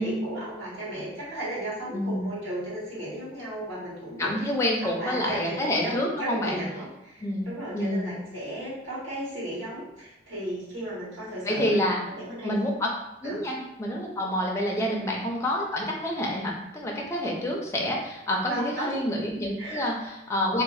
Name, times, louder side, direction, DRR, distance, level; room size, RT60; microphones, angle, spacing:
voice 1, 0.0-4.3 4.8-11.9 12.1-12.5 13.2-13.4 14.7-15.1 18.5-18.9 19.6-19.9, right 1 dB, 85° right, -8 dB, 1.5 m, -35 dB
voice 2, 1.9-2.3 4.2-6.6 7.2-7.5 7.7-8.1 11.4-12.0 12.4-12.9 13.2-20.6, left 1 dB, 15° left, -1 dB, 0.4 m, -28 dB
2.6 x 2.1 x 3.0 m, 0.91 s
head